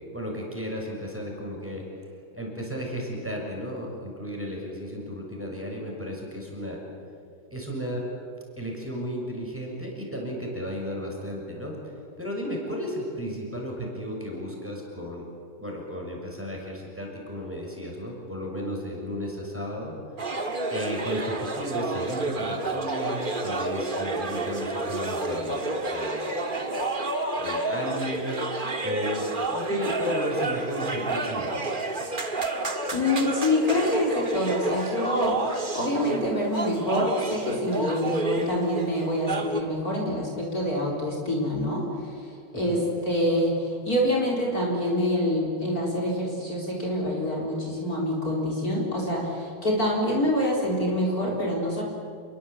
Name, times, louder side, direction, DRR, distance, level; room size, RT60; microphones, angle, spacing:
voice 1, 0.1-1.8 2.3-6.8 7.5-8.0 8.6-11.8 12.2-15.3 15.6-19.9 20.7-26.7 27.4-28.3 28.8-29.2 29.5-31.7 42.5-42.9, equal, 5° right, -1 dB, 6.6 m, -34 dB
sound 1, 20.2-39.6, right 2 dB, 25° right, 1.7 m, -30 dB
voice 2, 32.9-51.8, left 1 dB, 45° left, -2 dB, 4.5 m, -26 dB
28.0 x 22.5 x 8.4 m, 2.6 s
omnidirectional pair, 2.3 m